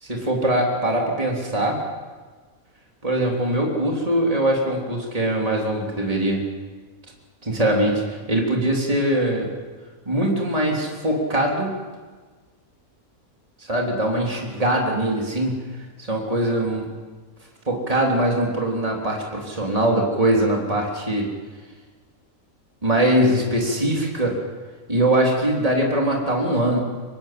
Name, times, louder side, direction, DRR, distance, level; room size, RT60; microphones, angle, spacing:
voice 1, 0.0-1.8 3.0-6.4 7.4-9.5 10.1-11.7 13.6-15.6 16.0-16.9 17.7-21.3 22.8-24.4 24.9-26.8, right 1 dB, 25° right, -1 dB, 3.8 m, -22 dB
25.5 x 19.5 x 7.9 m, 1.4 s
omnidirectional pair, 1.6 m